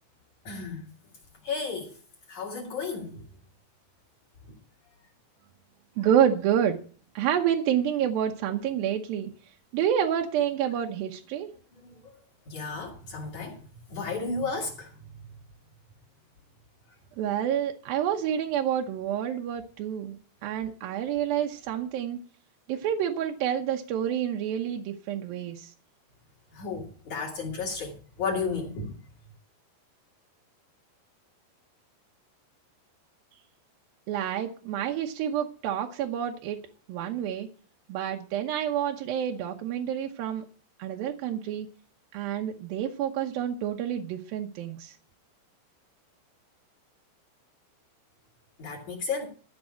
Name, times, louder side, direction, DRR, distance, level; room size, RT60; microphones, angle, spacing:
voice 1, 0.4-0.9 1.4-2.0 2.3-3.2 4.5-4.6 11.8-12.1 12.5-13.6 13.9-15.0 26.5-29.0 48.6-49.3, left 4 dB, 50° left, 2.9 m, -33 dB
voice 2, 6.0-6.8 7.2-9.3 9.7-11.5 17.2-22.2 22.7-25.7 34.1-36.6 36.9-37.5 37.9-40.4 40.8-41.7 42.1-45.0, right 9 dB, 75° right, 2.3 m, -28 dB
14.5 x 5.3 x 8.6 m
omnidirectional pair, 5.1 m